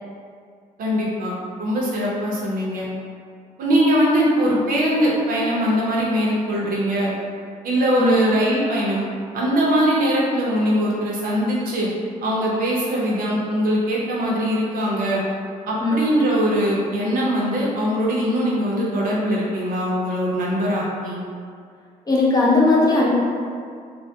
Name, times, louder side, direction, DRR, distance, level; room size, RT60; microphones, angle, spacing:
voice 1, 0.8-2.9 3.6-7.1 7.6-9.0 9.3-11.9 12.2-15.2 15.7-21.2, equal, 70° right, -5 dB, 0.6 m, -21 dB
voice 2, 22.1-23.1, left 2 dB, 25° left, -5 dB, 0.5 m, -17 dB
2.2 x 2.1 x 2.6 m, 2.2 s
cardioid pair, 95°, 15 cm